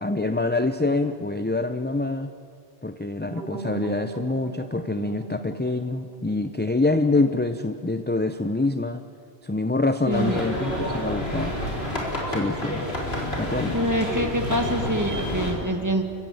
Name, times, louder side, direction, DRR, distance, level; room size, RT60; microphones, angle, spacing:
voice 1, 0.0-2.3 2.8-9.0 9.4-11.5 12.3-12.9 13.4-13.8, left 2 dB, 10° left, 9 dB, 0.5 m, -25 dB
sound 1, 3.3-8.2, right 2 dB, 75° right, 1.9 m, -40 dB
sound 2, 10.1-15.5, left 1 dB, 75° left, 4.2 m, -29 dB
voice 2, 10.1-10.4 13.7-16.0, equal, 15° right, 5 dB, 1.9 m, -25 dB
28.5 x 15.0 x 9.2 m, 2.3 s
omnidirectional pair, 1.1 m